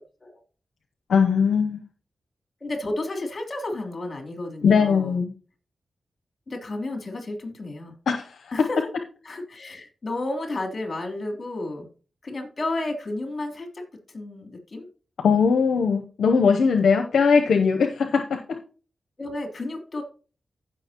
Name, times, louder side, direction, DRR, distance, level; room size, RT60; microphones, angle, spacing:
voice 1, 1.1-1.8 4.6-5.3 8.1-8.3 15.2-18.4, left 5 dB, 85° left, 5 dB, 0.7 m, -20 dB
voice 2, 2.6-5.2 6.5-7.9 8.5-8.9 9.2-11.9 12.2-13.8 14.1-14.9 19.2-20.0, left 2 dB, 45° left, 2 dB, 3.2 m, -32 dB
15.5 x 6.0 x 2.9 m, 0.38 s
cardioid pair, 50°, 0 cm